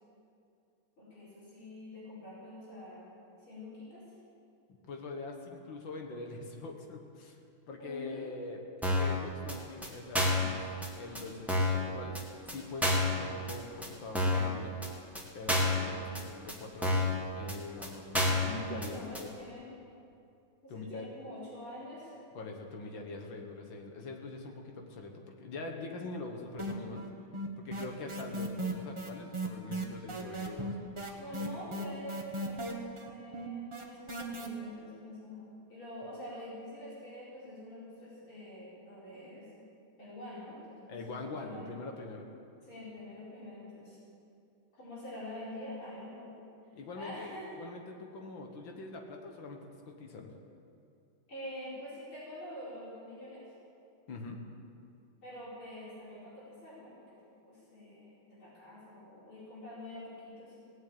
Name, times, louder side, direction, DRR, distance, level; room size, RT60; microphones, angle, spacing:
voice 1, 1.0-3.1 3.4-4.0 7.8-8.2 18.6-19.7 20.6-22.1 31.2-39.5 40.0-41.7 42.6-44.0 44.7-46.3 47.0-47.5 51.3-53.4 55.2-58.1 58.4-60.6, left 1 dB, 85° left, -9 dB, 5.7 m, -46 dB
voice 2, 4.7-7.4 7.7-8.6 8.9-12.2 12.5-14.8 15.3-19.3 20.7-21.1 22.3-27.1 27.6-30.8 31.4-31.5 40.9-42.2 46.7-49.6 49.9-50.3 54.1-54.4, left 3 dB, 65° left, 2 dB, 2.1 m, -43 dB
sound 1, 8.8-9.1 9.5-9.6 9.8-9.9 10.1-10.5 10.8-10.9 11.1-11.2 11.5-11.8 12.1-12.2 12.5-12.6 12.8-13.1 13.5-13.6 13.8-13.9 14.1-14.5 14.8-14.9 15.1-15.2 15.5-15.8 16.1-16.2 16.5-16.6 16.8-17.1 17.5-17.6 17.8-17.9 18.1-18.5 18.8-18.9 19.1-19.2, left 1 dB, ahead, 1.7 m, -28 dB
sound 2, 26.6-27.1 27.3-34.5, right 1 dB, 20° right, 0.8 m, -36 dB
18.0 x 7.6 x 8.7 m, 2.5 s
omnidirectional pair, 2.2 m